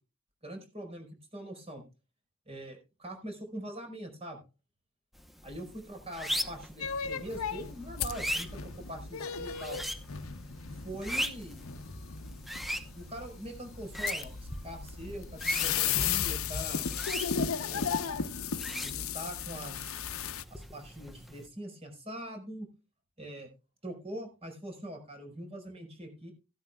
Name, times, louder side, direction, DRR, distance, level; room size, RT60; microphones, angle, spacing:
voice 1, 0.4-1.8 2.5-4.4 5.4-9.8 10.7-11.8 12.9-16.9 17.7-18.0 18.8-20.0 20.5-22.7 23.2-23.5 23.8-26.3, right 1 dB, 30° right, 4 dB, 5.0 m, -43 dB
sound 1, 5.2-21.5, equal, ahead, 1.0 m, -40 dB
sound 2, 6.8-20.4, left 7 dB, 90° left, 0.9 m, -35 dB
15.5 x 13.0 x 2.4 m, 0.31 s
head